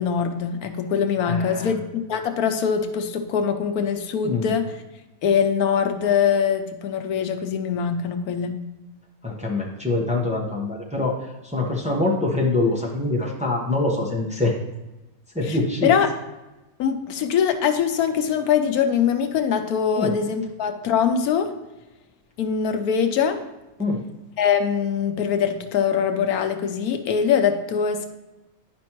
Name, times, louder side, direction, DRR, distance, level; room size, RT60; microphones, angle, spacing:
voice 1, 0.0-4.6 5.2-8.6 15.4-15.6 15.8-16.1 16.8-21.5 22.4-23.4 24.4-28.1, left 7 dB, 90° left, 7 dB, 1.2 m, -22 dB
voice 2, 1.2-1.8 4.2-4.5 9.2-11.2 11.5-14.5 15.3-15.9 20.0-20.1 23.8-24.0, left 2 dB, 5° right, -2 dB, 1.0 m, -24 dB
10.0 x 5.2 x 3.0 m, 1.0 s
omnidirectional pair, 1.5 m